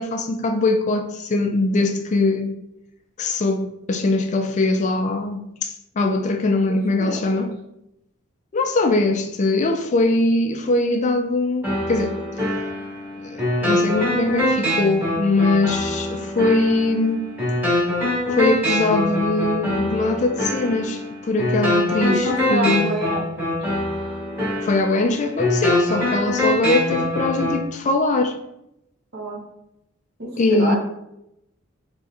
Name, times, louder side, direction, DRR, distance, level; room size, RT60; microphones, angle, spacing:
voice 1, 0.0-2.5 3.2-7.5 8.5-12.2 13.2-17.3 18.3-22.9 24.6-28.4 30.4-30.8, left 2 dB, 35° left, 0.3 m, -21 dB
voice 2, 7.0-7.5 22.0-23.6 29.1-29.4 30.2-30.8, right 1 dB, 55° right, 1.0 m, -27 dB
sound 1, 11.6-27.6, left 1 dB, 10° right, 1.4 m, -24 dB
4.0 x 3.3 x 2.4 m
head